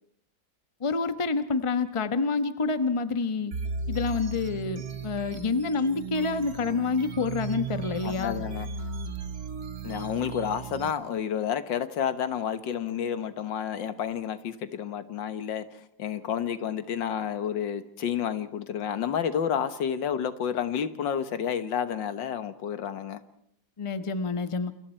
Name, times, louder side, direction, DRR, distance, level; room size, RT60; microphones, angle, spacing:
voice 1, 0.8-3.5 3.9-8.4 23.8-24.7, left 4 dB, 20° left, 10 dB, 0.9 m, -28 dB
sound 1, 3.5-10.9, right 4 dB, 55° right, 1.8 m, -36 dB
voice 2, 8.0-8.7 9.8-15.7 16.0-23.2, left 8 dB, 80° left, 12 dB, 1.9 m, -30 dB
29.0 x 28.5 x 4.5 m, 0.69 s
omnidirectional pair, 2.0 m